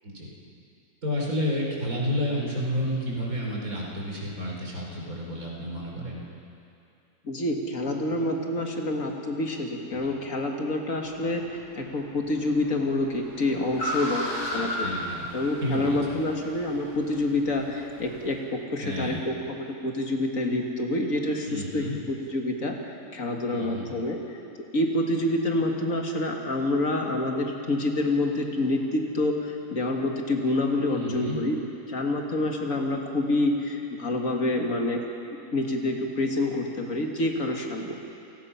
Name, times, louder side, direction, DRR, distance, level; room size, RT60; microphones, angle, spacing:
voice 1, 1.0-6.2 14.5-15.2 15.6-16.2 18.8-19.2 21.5-22.0 23.5-23.9 30.9-31.4, equal, 65° right, -2 dB, 4.3 m, -30 dB
voice 2, 7.2-14.9 15.3-24.4 24.7-35.1 35.5-38.0, left 2 dB, 60° left, 1 dB, 2.3 m, -27 dB
Car, 11.0-18.4, equal, 90° left, 4.9 m, -36 dB
29.0 x 18.0 x 5.8 m, 2.7 s
omnidirectional pair, 1.6 m